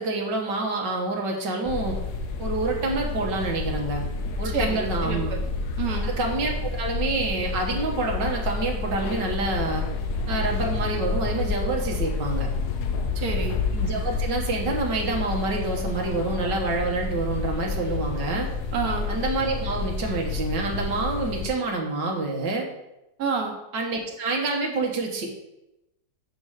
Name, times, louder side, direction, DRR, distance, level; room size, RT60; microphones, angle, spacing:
voice 1, 0.0-2.0 2.4-4.1 4.4-5.3 6.0-9.8 10.3-12.5 13.7-18.5 19.1-22.7 23.7-25.3, right 3 dB, 85° right, 0 dB, 1.8 m, -27 dB
sound 1, 1.7-21.5, left 4 dB, 70° left, 1.2 m, -29 dB
voice 2, 4.5-5.2 5.8-6.1 13.1-13.6 18.7-19.1 23.2-23.6, right 5 dB, 60° right, 1 dB, 1.6 m, -28 dB
6.9 x 5.6 x 4.8 m, 0.93 s
omnidirectional pair, 1.9 m